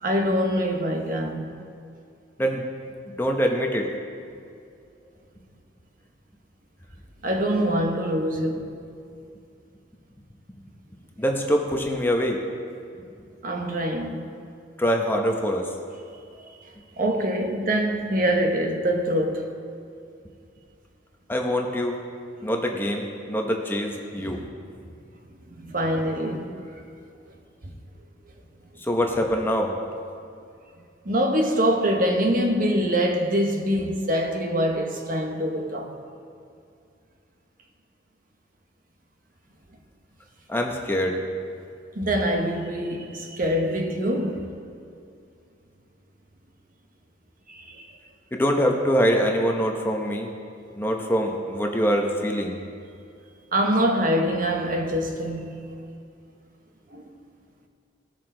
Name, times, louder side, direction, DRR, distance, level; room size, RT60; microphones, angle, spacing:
voice 1, 0.0-1.5 7.2-8.7 13.4-14.3 17.0-19.5 24.2-24.5 25.6-26.6 31.0-35.9 41.9-44.5 47.5-47.9 53.5-55.5 56.9-57.1, equal, 45° right, 1.0 m, -24 dB
voice 2, 3.2-3.9 11.2-12.4 14.8-15.7 21.3-21.9 22.4-24.4 28.9-29.7 40.5-41.2 48.3-50.3 50.8-52.6, equal, 10° left, 0.8 m, -24 dB
18.0 x 6.6 x 3.8 m
head